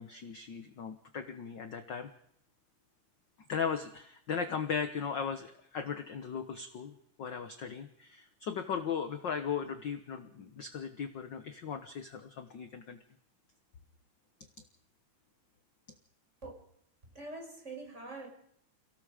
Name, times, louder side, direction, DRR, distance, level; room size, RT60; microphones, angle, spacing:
voice 1, 0.0-2.1 3.5-13.0, left 6 dB, 55° left, 7 dB, 1.3 m, -37 dB
voice 2, 17.1-18.3, right 2 dB, 20° right, 1 dB, 5.9 m, -44 dB
29.5 x 17.5 x 5.1 m, 0.72 s
omnidirectional pair, 3.5 m